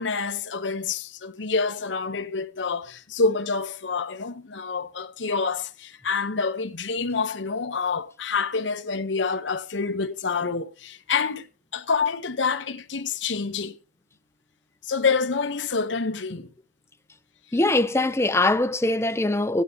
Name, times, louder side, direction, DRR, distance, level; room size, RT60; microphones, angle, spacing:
voice 1, 0.0-11.5 11.7-13.8 14.8-16.5, left 4 dB, 90° left, 1.0 m, -27 dB
voice 2, 17.5-19.6, left 2 dB, 15° left, 0.7 m, -22 dB
16.5 x 9.2 x 2.9 m
head